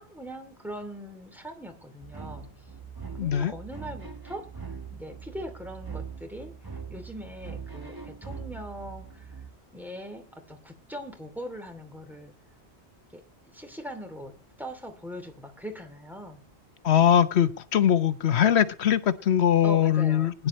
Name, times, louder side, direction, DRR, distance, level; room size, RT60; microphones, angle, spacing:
voice 1, 0.0-2.7 3.2-9.4 9.7-12.4 13.1-13.2 13.5-16.4 19.6-20.3, equal, ahead, 2.6 m, -41 dB
sound 1, 2.0-9.5, right 6 dB, 20° right, 1.7 m, -41 dB
voice 2, 3.2-3.5 16.8-20.3, left 9 dB, 75° left, 1.1 m, -21 dB
20.5 x 10.5 x 3.1 m
omnidirectional pair, 1.1 m